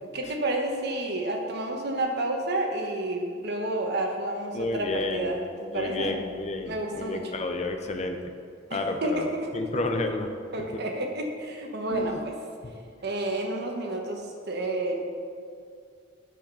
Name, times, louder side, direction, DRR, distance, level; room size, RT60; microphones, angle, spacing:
voice 1, 0.0-6.2 6.6-7.3 8.7-9.8 10.5-12.3 13.0-15.0, right 1 dB, 60° right, 2 dB, 1.1 m, -30 dB
voice 2, 4.5-5.3 5.7-8.2 8.7-9.2 9.5-10.3 11.9-12.1, left 2 dB, 35° left, 5 dB, 0.6 m, -30 dB
9.4 x 5.0 x 5.6 m, 2.3 s
head